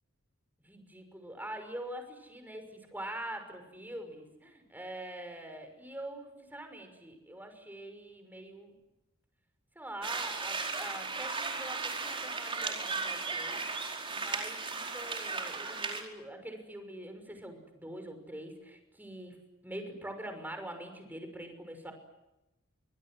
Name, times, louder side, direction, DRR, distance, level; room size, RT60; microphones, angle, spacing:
voice 1, 0.6-8.7 9.8-13.6 14.1-19.4 19.6-21.9, right 1 dB, 10° right, 6 dB, 6.0 m, -44 dB
sound 1, 10.0-16.0, right 4 dB, 25° right, 4.8 m, -36 dB
29.5 x 25.5 x 7.9 m, 0.97 s
head